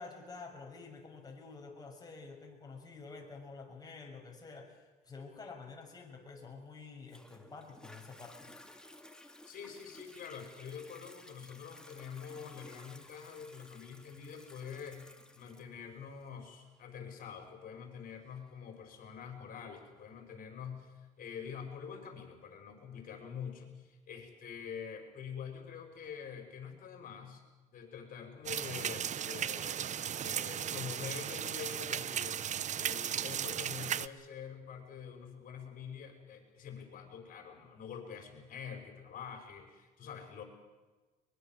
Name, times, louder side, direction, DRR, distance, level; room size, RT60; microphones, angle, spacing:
voice 1, 0.0-8.5, left 4 dB, 20° left, 0 dB, 6.3 m, -49 dB
Toilet flush, 7.1-20.1 20.7-20.8, left 1 dB, 5° left, 2.2 m, -56 dB
voice 2, 9.4-27.4 27.7-40.4, left 7 dB, 55° left, 5 dB, 5.9 m, -46 dB
sound 1, 28.4-34.1, right 9 dB, 45° right, 0.8 m, -36 dB
22.5 x 21.5 x 7.7 m, 1.2 s
cardioid pair, 110°, 17 cm